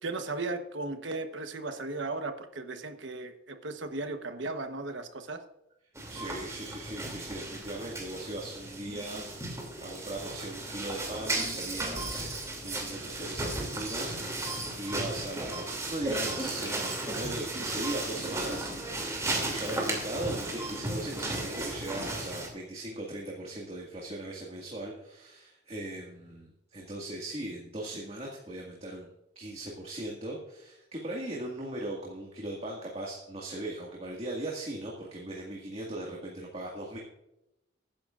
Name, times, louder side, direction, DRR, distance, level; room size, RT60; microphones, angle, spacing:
voice 1, 0.0-5.4, right 3 dB, 70° right, 7 dB, 1.2 m, -36 dB
sound 1, 6.0-22.5, right 2 dB, 15° right, 2.8 m, -35 dB
voice 2, 6.1-29.1 29.4-37.0, right 1 dB, 35° right, -2 dB, 2.0 m, -39 dB
20.0 x 10.5 x 2.5 m, 0.86 s
head